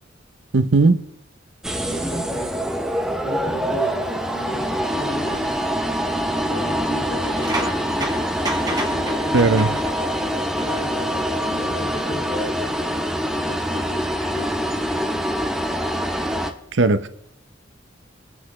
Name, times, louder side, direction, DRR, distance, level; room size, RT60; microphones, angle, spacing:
voice 1, 0.5-1.0 9.3-9.7 16.7-17.1, right 3 dB, 70° right, 0.7 m, -17 dB
sound 1, 1.6-16.5, equal, 5° right, 0.7 m, -24 dB
voice 2, 1.8-2.7 3.2-5.5 6.4-8.2 8.9-9.8 10.6-12.8 13.3-14.1 14.3-15.2, equal, 55° left, 2.2 m, -34 dB
sound 2, 7.2-10.2 10.6-10.9 12.4-12.5 14.1-14.3, right 1 dB, 20° right, 1.9 m, -31 dB
21.5 x 7.9 x 3.2 m
head